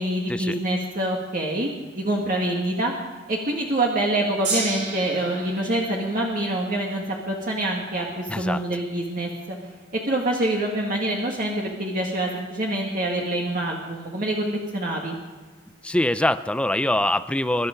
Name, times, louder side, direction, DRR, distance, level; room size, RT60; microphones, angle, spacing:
voice 1, 0.0-2.9 3.3-9.6 10.1-15.2, right 1 dB, 50° right, -1 dB, 1.8 m, -26 dB
Gong, 4.4-10.8 11.6-11.7, right 3 dB, 80° right, 5.6 m, -36 dB
voice 2, 8.3-8.6 15.8-17.7, left 1 dB, 5° left, 13 dB, 0.4 m, -23 dB
23.5 x 12.0 x 5.1 m, 1.5 s
head